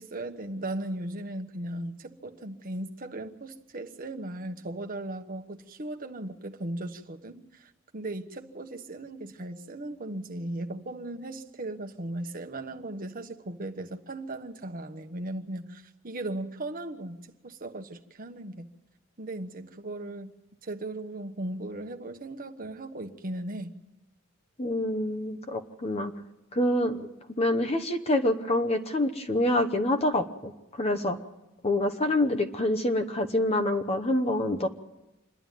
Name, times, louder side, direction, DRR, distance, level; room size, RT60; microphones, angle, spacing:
voice 1, 0.0-17.2 17.4-18.7 19.2-20.3 20.6-23.7, right 1 dB, 40° right, 6 dB, 1.2 m, -37 dB
voice 2, 24.6-26.1 26.5-30.5 30.8-31.2 31.6-34.7, left 1 dB, 30° left, 6 dB, 0.9 m, -26 dB
27.0 x 11.0 x 9.1 m, 0.98 s
head